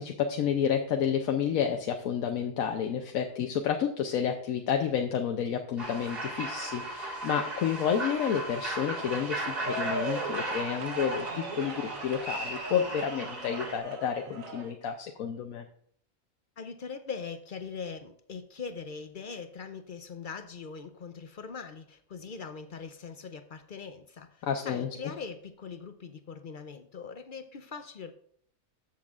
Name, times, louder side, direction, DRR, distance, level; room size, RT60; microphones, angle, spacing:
voice 1, 0.0-15.6 24.4-24.9, left 8 dB, 85° left, 4 dB, 1.1 m, -30 dB
sound 1, 5.8-13.8, right 2 dB, 45° right, 2.1 m, -36 dB
sound 2, 9.0-14.7, right 3 dB, 75° right, 1.3 m, -39 dB
voice 2, 16.6-28.1, left 5 dB, 55° left, 9 dB, 0.6 m, -41 dB
13.5 x 7.6 x 2.4 m, 0.66 s
omnidirectional pair, 1.4 m